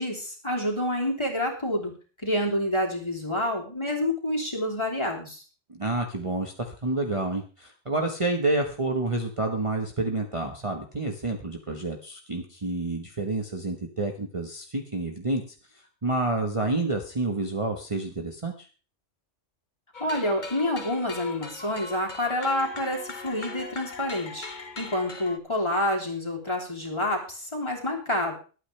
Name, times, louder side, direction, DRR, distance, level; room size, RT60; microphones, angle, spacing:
voice 1, 0.0-1.9 2.2-5.4 20.0-24.5 24.8-28.4, left 1 dB, 25° left, -1 dB, 3.2 m, -28 dB
voice 2, 5.7-15.4 15.7-18.7, right 2 dB, 25° right, 2 dB, 1.3 m, -29 dB
sound 1, 19.9-25.4, left 3 dB, 40° left, 1.2 m, -39 dB
22.0 x 9.0 x 3.3 m, 0.37 s
omnidirectional pair, 1.2 m